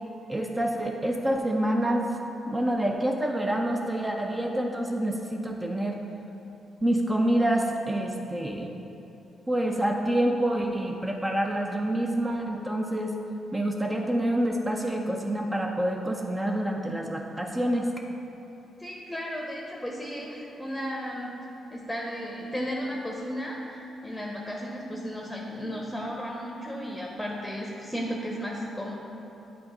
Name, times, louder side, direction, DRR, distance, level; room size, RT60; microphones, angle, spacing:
voice 1, 0.3-2.2 2.5-6.0 6.8-8.7 9.5-13.2 13.5-17.9, right 1 dB, 20° right, 1 dB, 0.6 m, -27 dB
voice 2, 18.8-21.3 21.7-28.9, equal, 5° left, -2 dB, 0.9 m, -34 dB
7.7 x 2.8 x 5.4 m, 3.0 s
hypercardioid pair, 45°, 0 cm